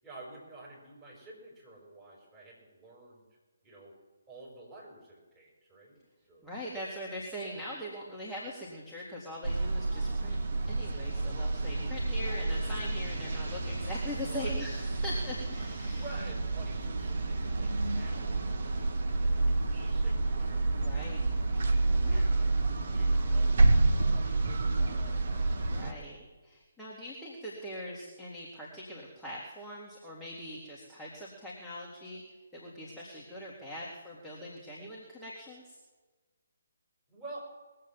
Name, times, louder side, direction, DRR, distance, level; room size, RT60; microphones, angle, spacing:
voice 1, 0.0-3.3 3.6-4.0 4.3-6.0 6.3-6.5 14.3-14.6 16.0-21.1 22.0-25.6 37.1-37.6, right 2 dB, 15° right, -4 dB, 5.5 m, -50 dB
voice 2, 6.4-10.4 10.7-16.0 20.8-21.2 21.8-22.2 22.9-23.2 25.6-26.2 26.4-32.2 32.5-35.8, equal, ahead, -8 dB, 1.9 m, -42 dB
sound 1, 9.4-25.9, right 2 dB, 50° right, 1.3 m, -29 dB
20.5 x 7.7 x 7.3 m, 1.3 s
figure-of-eight pair, 140°, 0 cm